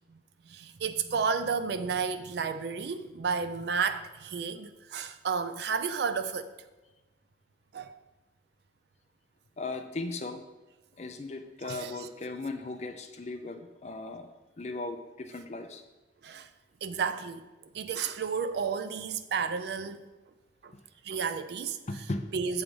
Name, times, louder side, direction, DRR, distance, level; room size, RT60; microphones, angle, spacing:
voice 1, 0.5-6.5 7.7-7.9 11.6-12.1 16.2-16.5 16.8-17.4 17.7-20.0 20.6-20.7 21.0-22.0 22.3-22.6, right 5 dB, 55° right, 0.4 m, -32 dB
voice 2, 9.6-10.4 11.0-14.3 14.6-15.8 21.9-22.2, left 2 dB, 35° left, 0.5 m, -37 dB
7.1 x 3.4 x 5.3 m
head